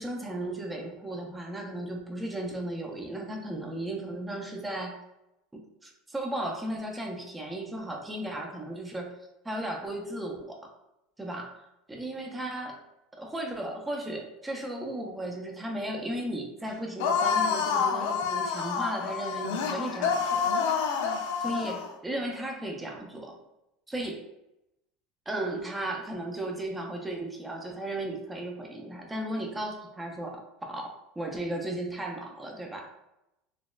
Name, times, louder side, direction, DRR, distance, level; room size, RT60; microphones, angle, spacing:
voice 1, 0.0-5.0 5.8-9.2 9.4-10.7 11.2-12.8 13.2-20.5 21.4-23.4 23.9-24.2 25.3-30.9 31.2-32.9, right 1 dB, 10° right, 1 dB, 0.4 m, -35 dB
sound 1, 17.0-21.9, left 6 dB, 80° left, 0.4 m, -28 dB
3.9 x 2.3 x 2.3 m, 0.87 s
supercardioid pair, 150°, 0 cm